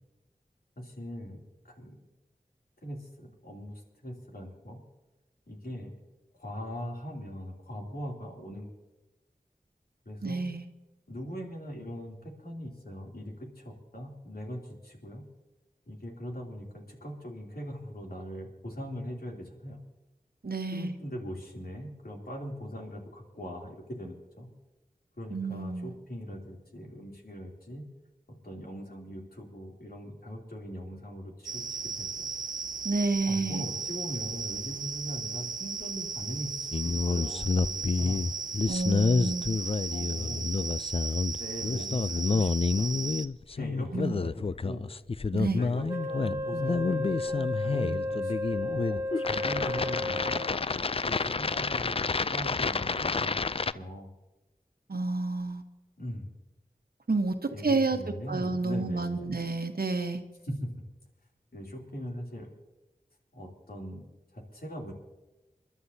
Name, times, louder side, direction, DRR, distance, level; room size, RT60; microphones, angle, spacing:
voice 1, 0.8-1.4 1.6-2.0 2.8-4.8 5.5-5.9 6.3-8.7 10.0-10.4 11.1-15.2 15.9-19.8 20.7-24.5 25.2-27.9 28.4-32.3 33.3-38.2 39.2-39.3 39.9-40.8 41.4-42.9 43.6-44.9 45.5-50.4 51.0-53.5 53.7-54.1 56.0-56.3 57.5-59.2 60.4-60.6 61.5-62.5 63.3-64.0 64.3-64.9, equal, 80° left, -1 dB, 2.9 m, -40 dB
voice 2, 10.2-10.7 20.4-21.0 25.3-25.9 32.8-33.6 38.7-39.6 43.9-44.2 45.3-45.6 54.9-55.6 57.1-58.0 58.3-60.2, right 3 dB, 75° right, 6 dB, 1.1 m, -30 dB
sound 1, 31.4-43.3, right 5 dB, 55° right, 0.6 m, -36 dB
sound 2, 36.7-53.7, left 4 dB, 40° left, 0.3 m, -29 dB
Wind instrument woodwind instrument, 45.9-50.6, left 1 dB, 20° right, 1.5 m, -33 dB
29.0 x 11.5 x 2.8 m, 1.1 s
wide cardioid pair, 45°, 16 cm